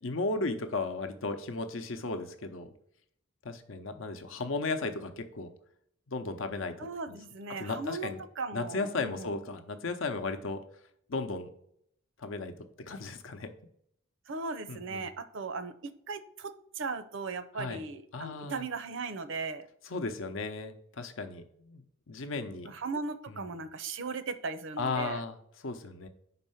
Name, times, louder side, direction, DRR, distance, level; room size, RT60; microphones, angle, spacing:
voice 1, 0.0-2.7 3.4-5.5 6.1-7.2 7.6-8.2 8.5-10.6 11.1-11.5 12.2-12.5 12.9-13.5 14.7-15.1 17.5-17.8 18.1-18.6 19.9-22.7 23.5-23.6 24.8-25.4 25.6-26.1, left 3 dB, 70° left, 8 dB, 0.8 m, -35 dB
voice 2, 6.8-9.4 14.3-19.7 22.7-25.2, right 4 dB, 60° right, 12 dB, 0.6 m, -38 dB
5.4 x 4.1 x 5.6 m, 0.69 s
head